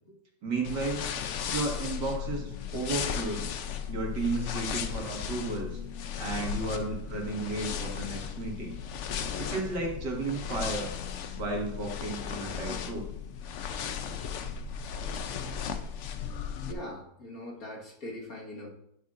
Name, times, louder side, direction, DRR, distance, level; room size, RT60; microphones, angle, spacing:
voice 1, 0.4-1.1 1.5-3.5 3.9-5.8 6.2-8.8 9.4-10.9 11.4-13.1, right 3 dB, 65° right, 0 dB, 2.3 m, -33 dB
sound 1, 0.6-16.7, left 8 dB, 80° left, 0.6 m, -36 dB
voice 2, 16.6-18.7, left 1 dB, 50° left, -2 dB, 2.0 m, -42 dB
10.0 x 10.0 x 2.5 m, 0.76 s
omnidirectional pair, 2.0 m